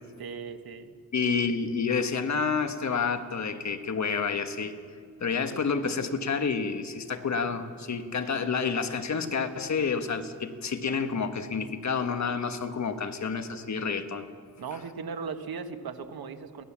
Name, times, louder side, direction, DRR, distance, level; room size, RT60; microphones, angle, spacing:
voice 1, 0.2-0.9 1.2-1.3 14.6-16.6, right 5 dB, 75° right, 7 dB, 1.5 m, -37 dB
voice 2, 1.1-4.7 5.2-14.3, left 5 dB, 50° left, 8 dB, 1.4 m, -29 dB
23.0 x 18.0 x 7.4 m, 2.1 s
wide cardioid pair, 130°, 36 cm